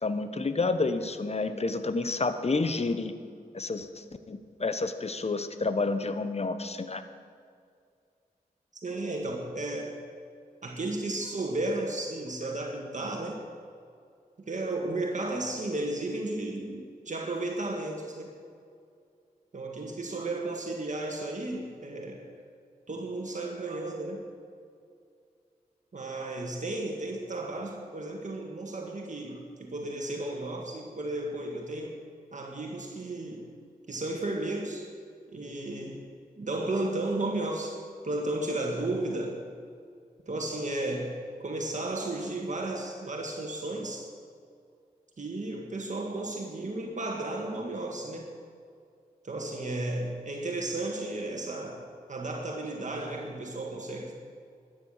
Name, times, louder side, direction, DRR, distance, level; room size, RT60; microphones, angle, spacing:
voice 1, 0.0-3.1 3.5-7.0, left 3 dB, 40° left, 10 dB, 1.1 m, -30 dB
voice 2, 8.8-10.0 10.6-13.4 14.5-18.3 19.5-22.3 22.9-24.3 25.9-32.0 32.3-33.5 33.9-34.9 35.3-36.1 36.4-39.4 40.3-41.2 41.4-44.1 45.2-48.3 49.2-54.1, right 2 dB, 50° right, 1 dB, 1.8 m, -34 dB
12.5 x 9.6 x 6.6 m, 2.3 s
cardioid pair, 45°, 16 cm